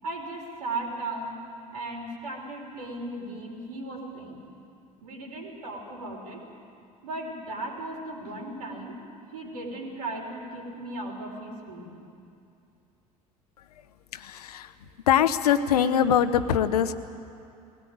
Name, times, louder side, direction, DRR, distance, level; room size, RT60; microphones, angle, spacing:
voice 1, 0.0-1.4 1.7-4.4 5.0-6.4 7.0-9.0 9.3-12.0, right 2 dB, 70° right, 1 dB, 4.3 m, -36 dB
voice 2, 14.1-14.7 15.1-16.9, left 9 dB, 70° left, 11 dB, 1.0 m, -23 dB
21.0 x 18.0 x 9.3 m, 2.6 s
figure-of-eight pair, 65°, 20 cm